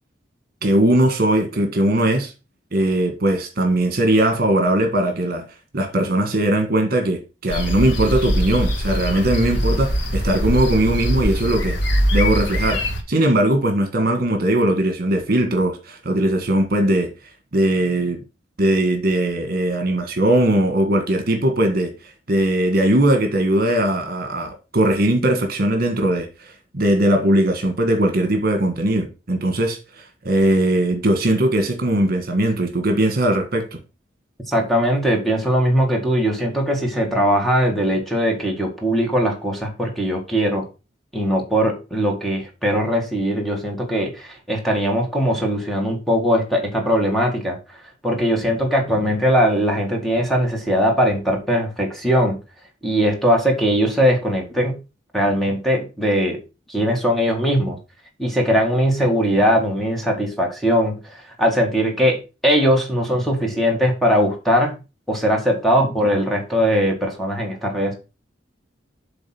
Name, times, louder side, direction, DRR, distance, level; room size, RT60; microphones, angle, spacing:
voice 1, 0.6-2.3 2.7-5.5 5.7-11.7 12.1-12.8 13.1-17.1 17.5-18.2 18.6-21.9 22.3-26.3 26.7-33.8, right 1 dB, 50° right, 1.6 m, -19 dB
sound 1, 7.5-13.0, equal, 65° left, 1.6 m, -22 dB
voice 2, 34.5-40.7 41.1-47.6 48.0-52.4 52.8-54.7 55.1-56.4 56.7-57.8 58.2-62.2 62.4-64.8 65.1-67.9, equal, ahead, 1.8 m, -20 dB
7.9 x 3.7 x 6.0 m
head